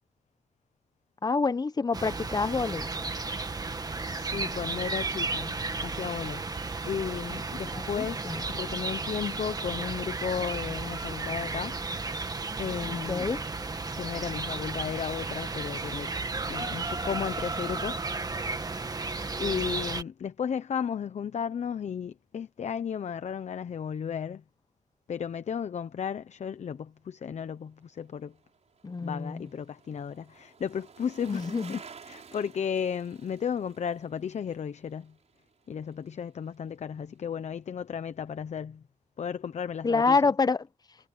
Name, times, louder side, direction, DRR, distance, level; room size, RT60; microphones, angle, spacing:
voice 1, 1.2-2.9 7.7-8.4 12.9-13.4 28.8-29.5 31.3-31.8 39.8-40.7, left 4 dB, 30° left, 0.9 m, -27 dB
sound 1, 1.9-20.0, right 3 dB, 30° right, 1.8 m, -34 dB
voice 2, 4.0-12.1 12.6-13.3 13.9-16.1 16.5-18.2 19.4-24.4 25.1-28.3 29.0-35.1 35.7-38.8 39.2-40.2, left 7 dB, 55° left, 0.9 m, -34 dB
Bicycle, 27.8-36.2 36.5-36.6, right 6 dB, 55° right, 5.4 m, -53 dB
cardioid pair, 95°, 14 cm